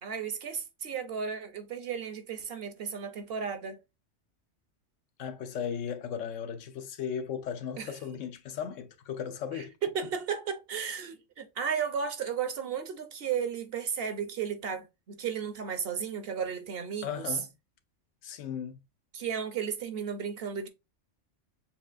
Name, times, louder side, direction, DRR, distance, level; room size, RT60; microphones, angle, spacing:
voice 1, 0.0-3.8 7.8-7.9 9.5-17.4 19.1-20.7, right 7 dB, 60° right, 0.8 m, -34 dB
voice 2, 5.2-9.7 17.0-17.5 18.2-18.8, left 8 dB, 80° left, 1.0 m, -36 dB
6.9 x 2.4 x 2.4 m
omnidirectional pair, 1.3 m